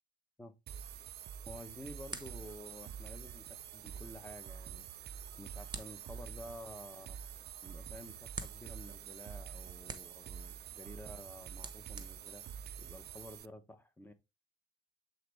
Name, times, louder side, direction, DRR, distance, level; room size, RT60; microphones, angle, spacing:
sound 1, 0.7-13.5, right 9 dB, 55° right, 0.4 m, -47 dB
sound 2, 0.9-1.2 2.1-3.1 3.3-4.3 5.1-7.3 7.8-8.9 9.3-10.3 10.8-12.9, left 4 dB, 80° left, 1.0 m, -68 dB
sound 3, 1.2-13.4, right 3 dB, 20° right, 1.1 m, -53 dB
voice 1, 1.5-7.2 7.6-12.4 12.8-14.1, left 1 dB, 10° left, 1.1 m, -51 dB
7.7 x 4.0 x 3.5 m
cardioid pair, 90°, 20 cm